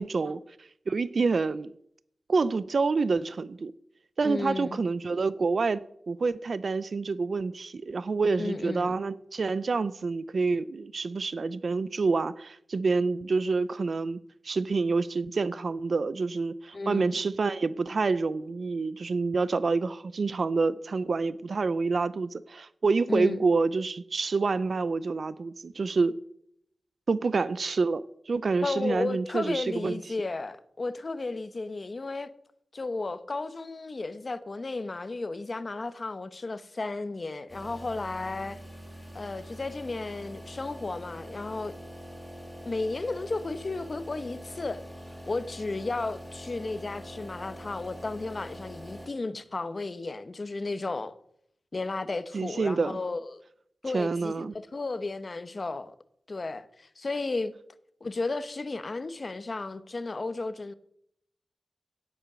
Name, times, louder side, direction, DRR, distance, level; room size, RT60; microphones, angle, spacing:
voice 1, 0.0-1.8 2.3-3.7 4.2-5.8 6.1-14.2 14.4-26.1 27.1-30.0 52.3-53.0 53.8-54.5, right 4 dB, 60° right, 0.5 m, -27 dB
voice 2, 4.2-4.8 8.4-8.9 16.7-17.2 23.1-23.4 28.6-32.3 32.7-38.6 39.1-41.7 42.6-44.8 45.3-51.1 51.7-53.4 53.8-55.9 56.3-57.5 58.0-60.7, left 3 dB, 40° left, 0.9 m, -33 dB
sound 1, 37.5-49.1, equal, 10° right, 4.0 m, -44 dB
17.0 x 8.2 x 6.1 m
wide cardioid pair, 115°, 0 cm